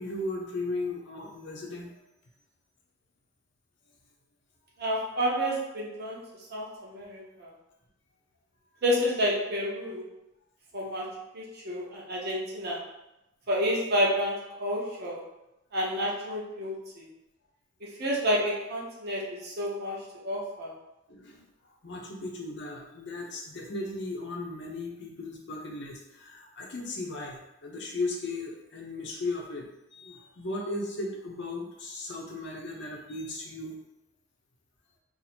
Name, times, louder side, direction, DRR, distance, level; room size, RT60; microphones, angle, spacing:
voice 1, 0.0-1.9 21.1-21.4 21.8-33.8, left 2 dB, 60° left, -1 dB, 0.7 m, -36 dB
voice 2, 4.8-6.2 6.5-7.5 8.8-10.0 10.7-12.8 13.5-15.2 15.7-17.0 17.8-20.7, equal, 50° right, -3 dB, 0.9 m, -30 dB
2.8 x 2.6 x 4.3 m, 0.94 s
head